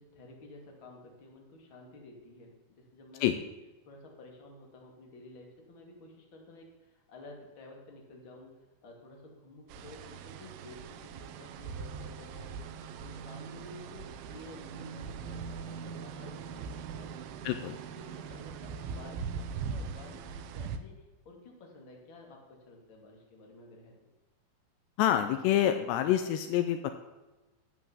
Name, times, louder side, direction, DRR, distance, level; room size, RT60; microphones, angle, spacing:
voice 1, 0.0-3.4 3.9-12.5 13.0-16.6 16.9-17.1 18.0-24.0, left 2 dB, 35° left, 0 dB, 2.5 m, -52 dB
sound 1, 9.7-20.8, right 6 dB, 90° right, 3.2 m, -41 dB
voice 2, 17.4-17.8 25.0-26.9, left 11 dB, 85° left, 8 dB, 2.7 m, -27 dB
12.5 x 8.4 x 7.2 m, 1.1 s
omnidirectional pair, 5.2 m